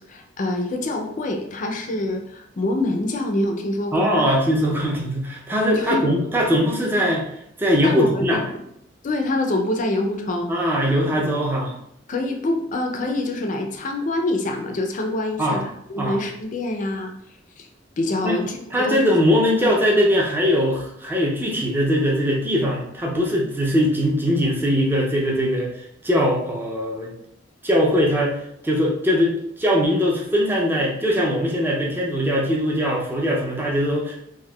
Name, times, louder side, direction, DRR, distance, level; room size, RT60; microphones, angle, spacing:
voice 1, 0.1-4.2 5.7-6.0 7.8-8.4 9.0-10.5 12.1-15.6 15.9-17.1 17.6-17.7 18.0-19.0, left 2 dB, 45° left, 3 dB, 0.4 m, -25 dB
voice 2, 3.9-7.3 7.6-8.4 10.5-11.7 15.4-15.7 16.0-16.2 18.2-18.4 18.7-25.7 26.0-27.1 27.6-28.4 28.6-34.3, equal, 10° right, -2 dB, 0.5 m, -21 dB
3.5 x 2.2 x 2.2 m, 0.74 s
head